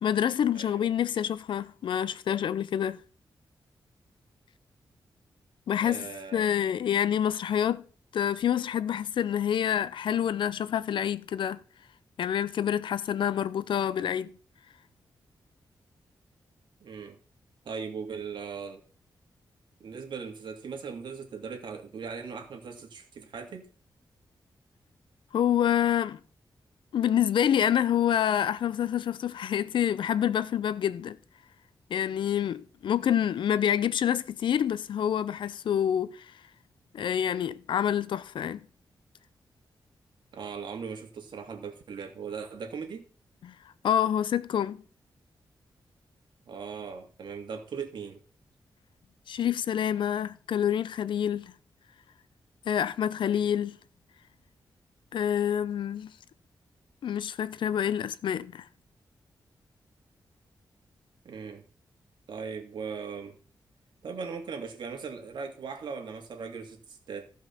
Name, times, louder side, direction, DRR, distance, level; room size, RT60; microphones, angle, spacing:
voice 1, 0.0-3.0 5.7-7.8 8.1-11.6 12.2-14.3 25.3-26.2 26.9-31.2 31.9-36.3 36.9-38.6 43.4-43.5 43.8-44.8 49.3-51.5 52.7-53.8 55.1-56.1 57.0-58.7, left 9 dB, 85° left, 0.6 m, -27 dB
voice 2, 0.5-0.9 5.8-6.5 16.8-17.2 17.6-18.8 19.8-23.7 40.3-43.0 46.5-48.2 61.2-61.6 62.3-63.4 64.0-67.3, right 5 dB, 75° right, 2.5 m, -39 dB
15.0 x 5.5 x 5.9 m
wide cardioid pair, 125°, 8 cm